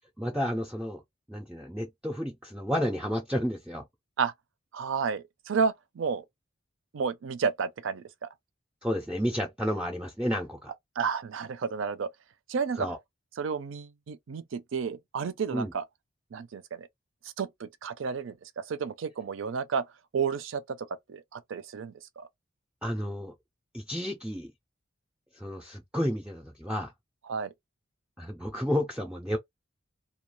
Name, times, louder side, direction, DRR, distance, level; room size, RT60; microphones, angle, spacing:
voice 1, 0.2-1.0 1.3-3.8 8.8-10.7 12.8-13.0 15.5-15.7 22.8-23.3 23.7-24.5 25.3-26.9 28.2-29.4, equal, 5° right, 0.4 m, -31 dB
voice 2, 4.7-6.2 6.9-8.1 11.0-12.1 12.5-12.9 13.4-15.8 16.3-16.9 17.4-19.9 20.1-22.3 27.3-27.5, right 6 dB, 70° right, 0.4 m, -31 dB
2.3 x 2.2 x 2.9 m
head